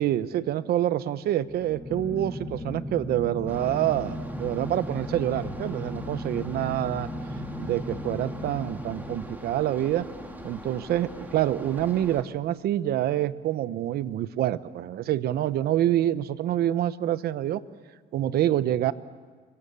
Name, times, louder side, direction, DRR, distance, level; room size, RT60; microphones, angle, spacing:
voice 1, 0.0-7.1 7.4-10.1 10.4-17.6 18.1-18.9, right 12 dB, 70° right, 15 dB, 1.0 m, -27 dB
sound 1, 1.4-9.7, left 1 dB, 10° left, 2.4 m, -37 dB
sound 2, 3.5-12.2, equal, 10° right, 3.1 m, -41 dB
29.5 x 24.5 x 7.0 m, 1.5 s
cardioid pair, 110°, 17 cm